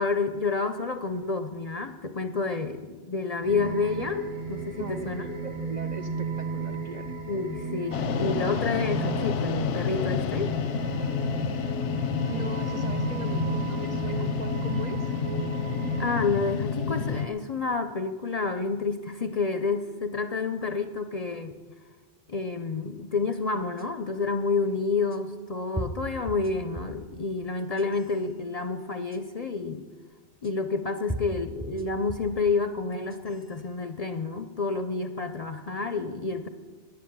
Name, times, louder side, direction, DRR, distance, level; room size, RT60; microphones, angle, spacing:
voice 1, 0.0-5.4 7.3-10.6 16.0-21.5 22.3-29.9 30.4-36.5, left 4 dB, 45° left, 9 dB, 0.5 m, -29 dB
sound 1, 3.4-16.3, right 4 dB, 80° right, 3.0 m, -34 dB
voice 2, 4.8-7.1 12.3-15.1, right 6 dB, 55° right, 7 dB, 0.5 m, -40 dB
sound 2, 7.9-17.3, left 7 dB, 85° left, 1.0 m, -29 dB
sound 3, 23.8-23.9 25.1-25.2 25.8-27.1 27.6-28.1 29.1-29.2 30.4-30.5 31.1-32.4 32.9-33.5, right 1 dB, 10° right, 0.6 m, -36 dB
10.5 x 9.6 x 8.6 m, 1.4 s
omnidirectional pair, 1.2 m